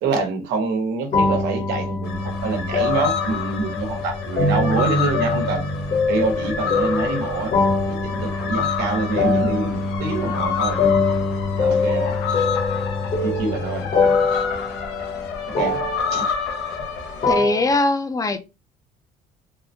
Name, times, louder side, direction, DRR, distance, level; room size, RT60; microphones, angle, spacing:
voice 1, 0.0-5.7 6.1-7.6 7.9-10.8 11.5-12.2 13.2-13.9 15.6-15.8 16.1-16.3, right 3 dB, 85° right, 1.0 m, -26 dB
sound 1, 1.1-17.8, left 3 dB, 50° left, 1.0 m, -23 dB
sound 2, 2.0-17.4, left 6 dB, 85° left, 0.7 m, -29 dB
voice 2, 17.3-18.4, left 2 dB, 20° left, 0.5 m, -20 dB
3.5 x 2.1 x 2.7 m
cardioid pair, 110°, 17 cm